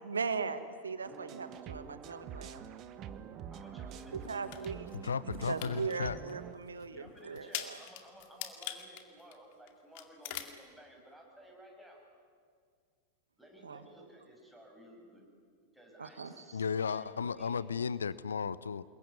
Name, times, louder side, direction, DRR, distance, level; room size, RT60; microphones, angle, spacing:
voice 1, 0.0-2.6 4.1-4.8 5.5-7.8 13.6-13.8 16.0-16.3, right 5 dB, 75° right, 12 dB, 1.3 m, -38 dB
sound 1, 1.0-6.5, right 8 dB, 35° right, 1.4 m, -46 dB
voice 2, 3.5-4.8 6.9-12.0 13.4-15.2 15.7-17.6, right 1 dB, ahead, 0 dB, 7.1 m, -55 dB
sound 2, 3.9-5.0 5.3-5.9 6.3-6.4 6.8-6.9 7.4-9.7 9.9-10.6, left 12 dB, 50° left, 2.2 m, -42 dB
voice 3, 5.0-6.2 16.5-18.8, left 6 dB, 70° left, 18 dB, 0.6 m, -34 dB
27.5 x 21.5 x 9.7 m, 2.1 s
figure-of-eight pair, 90°, 0 cm